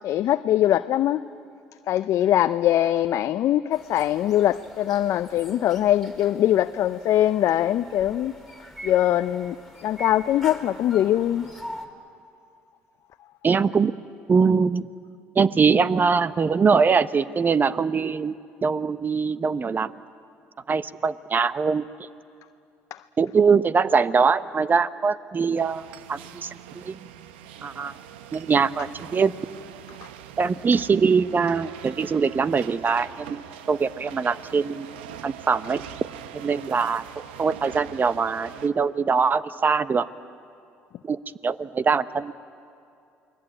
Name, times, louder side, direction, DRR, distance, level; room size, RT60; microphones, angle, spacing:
voice 1, 0.0-1.2 1.9-8.3 8.8-9.6 9.8-11.5, left 12 dB, 60° left, 0.5 m, -22 dB
sound 1, 3.7-11.9, equal, ahead, 3.9 m, -44 dB
voice 2, 13.4-13.9 14.3-14.9 15.3-19.9 20.7-21.8 23.2-26.5 26.7-27.0 27.6-27.9 28.3-29.3 30.4-33.4 33.7-34.9 35.2-35.8 36.3-37.0 37.4-40.1 41.0-42.3, right 5 dB, 35° right, 0.9 m, -22 dB
sound 2, 25.5-38.7, right 10 dB, 85° right, 0.9 m, -43 dB
29.0 x 21.5 x 8.8 m
hypercardioid pair, 65°, 6 cm